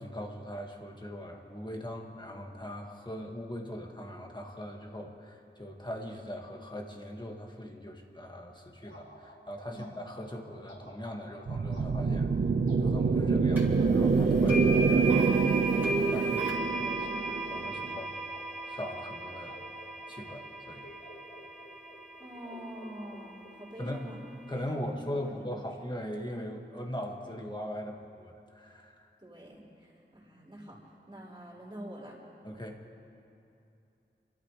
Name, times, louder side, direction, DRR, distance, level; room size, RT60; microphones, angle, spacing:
voice 1, 0.0-12.3 12.8-15.0 16.1-16.4 17.5-18.1 18.7-19.6 20.1-20.9 23.8-24.1 24.5-29.0 32.4-32.8, equal, 25° left, 1 dB, 2.0 m, -40 dB
sound 1, 8.8-24.0, left 1 dB, 80° left, 3.7 m, -53 dB
sound 2, 11.5-18.0, right 4 dB, 65° right, 0.5 m, -26 dB
sound 3, 13.6-13.7 14.5-22.5, right 2 dB, 10° right, 3.7 m, -35 dB
voice 2, 16.7-17.9 22.2-24.2 24.5-25.7 29.2-32.2, equal, 25° right, -6 dB, 4.6 m, -46 dB
29.0 x 13.0 x 3.3 m, 2.8 s
wide cardioid pair, 55°, 19 cm